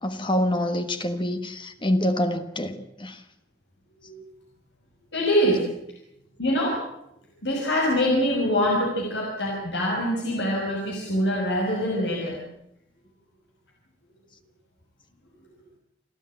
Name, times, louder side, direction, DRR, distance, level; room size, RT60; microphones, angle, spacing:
voice 1, 0.0-3.2, left 1 dB, 30° left, 8 dB, 1.5 m, -26 dB
voice 2, 5.1-5.6 6.4-6.8 7.4-12.4, equal, 90° left, -2 dB, 6.2 m, -24 dB
29.0 x 13.0 x 9.1 m, 0.80 s
head